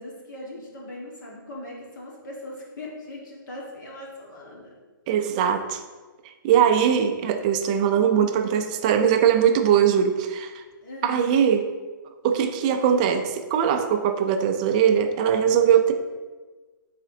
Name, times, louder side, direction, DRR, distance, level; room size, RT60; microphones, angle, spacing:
voice 1, 0.0-4.7 5.1-5.2 10.8-11.3, left 1 dB, 60° left, -2 dB, 1.5 m, -39 dB
voice 2, 5.1-5.8 6.4-10.6 11.0-11.7 12.2-15.9, right 8 dB, 20° right, 6 dB, 0.4 m, -21 dB
9.0 x 4.1 x 2.7 m, 1.3 s
hypercardioid pair, 165°, 12 cm